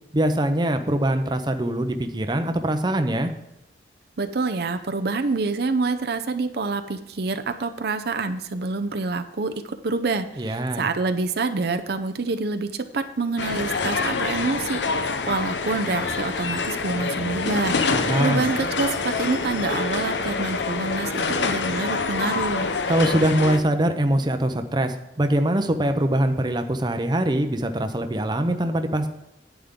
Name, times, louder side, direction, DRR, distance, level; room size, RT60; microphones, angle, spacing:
voice 1, 0.1-3.3 10.4-10.8 17.9-18.6 22.9-29.1, right 1 dB, 25° right, 7 dB, 0.7 m, -23 dB
voice 2, 4.2-22.7, right 3 dB, 65° right, 8 dB, 0.6 m, -27 dB
sound 1, 13.4-23.6, left 4 dB, 80° left, 0.8 m, -26 dB
10.5 x 9.4 x 3.7 m, 0.92 s
head